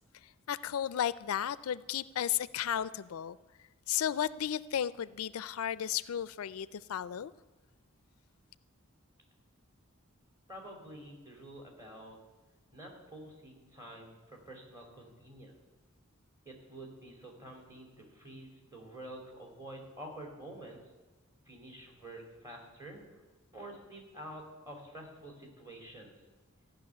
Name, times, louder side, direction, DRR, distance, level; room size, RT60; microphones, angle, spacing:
voice 1, 0.5-3.4 3.9-7.3, left 10 dB, 80° left, 18 dB, 0.4 m, -34 dB
voice 2, 10.5-12.2 12.7-15.5 16.4-20.8 21.5-23.0 23.5-26.1, right 1 dB, 15° right, 1 dB, 2.9 m, -48 dB
14.5 x 6.1 x 9.6 m, 1.2 s
head